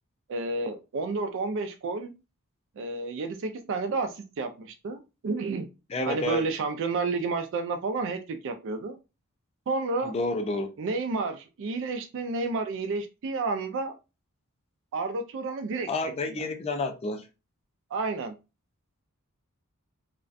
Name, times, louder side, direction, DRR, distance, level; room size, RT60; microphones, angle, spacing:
voice 1, 0.3-2.1 2.8-5.7 6.1-9.0 9.7-10.1 10.8-13.9 14.9-15.9 16.3-16.5 17.9-18.4, right 3 dB, 60° right, 0.3 m, -30 dB
voice 2, 5.9-6.4 10.0-10.7 15.9-17.2, left 2 dB, 25° left, 0.4 m, -29 dB
2.4 x 2.1 x 2.5 m
head